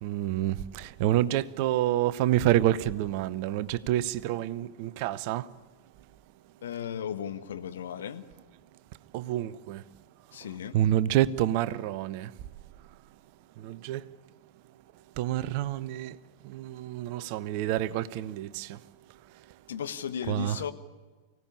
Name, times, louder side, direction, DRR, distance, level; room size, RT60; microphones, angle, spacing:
voice 1, 0.0-5.4 9.1-9.8 10.7-12.3 13.6-14.0 15.2-16.1 16.5-18.8 20.3-20.6, right 13 dB, 45° right, 0.7 m, -28 dB
voice 2, 6.6-8.3 10.3-10.8 19.7-20.7, left 8 dB, 65° left, 1.4 m, -35 dB
24.5 x 17.0 x 9.9 m
figure-of-eight pair, 90°, 0 cm